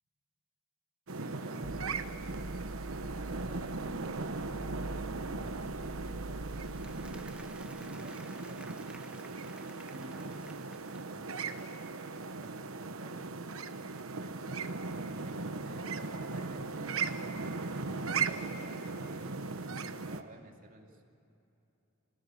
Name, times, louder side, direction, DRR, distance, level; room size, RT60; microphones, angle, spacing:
voice 1, 1.1-6.6 7.8-13.5 14.2-14.5 15.2-17.3 17.8-21.0, right 2 dB, 40° right, 2 dB, 2.7 m, -55 dB
sound 1, 1.1-20.2, right 4 dB, 85° right, 1.1 m, -38 dB
sound 2, 1.6-7.6, right 2 dB, 65° right, 1.4 m, -44 dB
Applause, 6.5-11.5, right 1 dB, 5° right, 1.2 m, -55 dB
27.5 x 19.0 x 8.5 m, 2.8 s
head